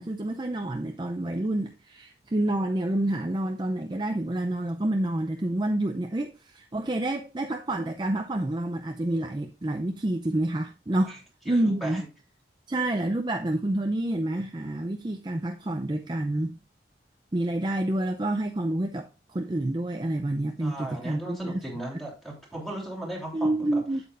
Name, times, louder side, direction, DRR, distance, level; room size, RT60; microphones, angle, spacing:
voice 1, 0.0-11.2 11.5-12.0 12.7-16.5 17.3-21.5 23.3-24.0, right 1 dB, 25° right, 0.5 m, -28 dB
voice 2, 11.4-12.1 20.6-23.8, right 1 dB, ahead, 3.2 m, -37 dB
8.6 x 8.1 x 2.5 m
head